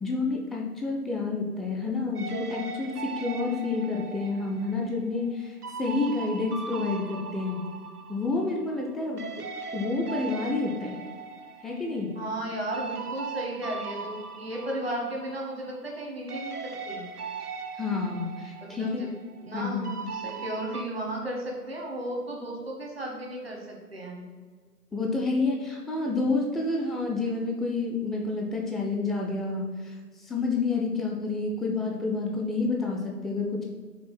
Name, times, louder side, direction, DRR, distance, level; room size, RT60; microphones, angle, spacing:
voice 1, 0.0-7.6 8.1-9.5 9.7-11.0 11.6-12.1 17.8-19.1 19.5-19.9 24.9-33.6, left 3 dB, ahead, -1 dB, 0.4 m, -29 dB
sound 1, 2.2-8.9 9.2-16.0 16.3-20.8, right 5 dB, 70° right, 0.7 m, -39 dB
voice 2, 12.1-17.1 18.6-19.1 19.4-24.3, right 1 dB, 40° right, -1 dB, 1.4 m, -34 dB
5.9 x 3.9 x 5.9 m, 1.5 s
figure-of-eight pair, 155°, 48 cm